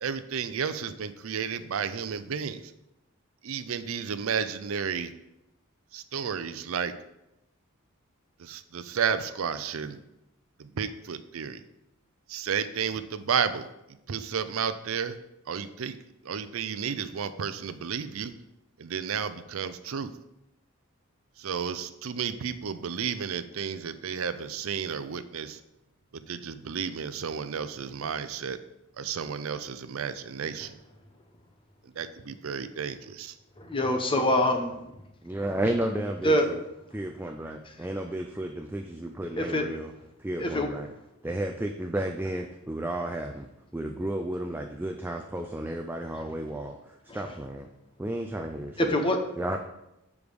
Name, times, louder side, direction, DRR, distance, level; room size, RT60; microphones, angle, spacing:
voice 1, 0.0-2.6 3.4-5.1 5.9-6.9 8.4-10.0 10.8-11.6 12.3-13.7 14.1-15.2 15.5-16.0 16.3-18.3 18.8-20.1 21.4-25.6 26.1-28.6 29.0-30.7 32.0-33.3, right 7 dB, 75° right, 12 dB, 0.5 m, -32 dB
voice 2, 33.6-34.8 36.2-36.5 39.4-39.6 40.4-40.7 48.9-49.2, left 1 dB, 25° left, 5 dB, 0.8 m, -24 dB
voice 3, 35.2-36.6 36.9-39.9 40.2-40.9 41.2-43.5 43.7-47.7 48.0-49.0 49.4-49.6, right 1 dB, 10° right, 3 dB, 0.4 m, -32 dB
7.1 x 4.7 x 5.1 m, 0.89 s
head